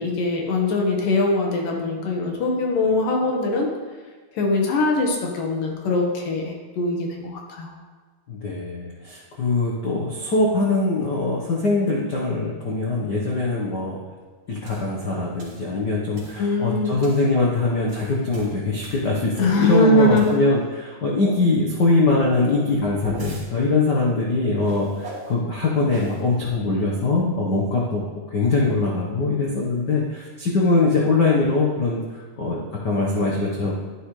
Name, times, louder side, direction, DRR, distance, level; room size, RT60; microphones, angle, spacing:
voice 1, 0.0-3.7 4.3-7.7 16.4-17.0 19.4-20.3, left 2 dB, 80° left, 0 dB, 3.2 m, -22 dB
voice 2, 8.3-14.0 14.5-33.7, left 3 dB, 60° left, -3 dB, 1.1 m, -22 dB
sound 1, 14.6-14.9 15.4-15.7 16.1-16.5 17.0-17.3 17.7-19.7 20.1-20.7 22.6-23.5 24.6-25.3 25.9-26.2, right 1 dB, 55° right, 3.7 m, -40 dB
12.0 x 11.0 x 3.3 m, 1.4 s
omnidirectional pair, 3.9 m